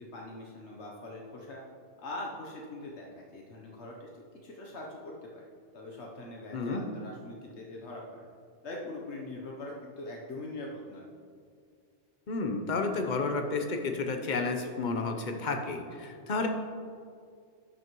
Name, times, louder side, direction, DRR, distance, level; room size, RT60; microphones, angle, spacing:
voice 1, 0.0-1.6 2.0-5.5 5.7-8.3 8.6-11.0, left 2 dB, 75° left, -1 dB, 1.2 m, -42 dB
voice 2, 6.5-6.8 12.3-16.5, left 3 dB, 45° left, 4 dB, 0.9 m, -31 dB
12.0 x 6.3 x 3.0 m, 2.2 s
omnidirectional pair, 1.2 m